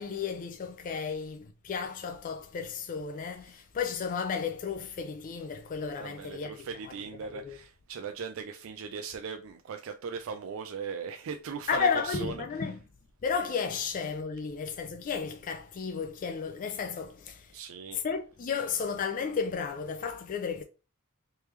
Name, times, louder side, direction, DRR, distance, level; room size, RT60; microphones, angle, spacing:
voice 1, 0.0-6.9 7.3-7.6 11.7-12.8 13.2-17.6 17.9-20.6, left 6 dB, 40° left, 0.3 m, -33 dB
voice 2, 6.0-12.3 17.5-18.0, right 5 dB, 65° right, 0.4 m, -38 dB
3.4 x 3.1 x 3.1 m
head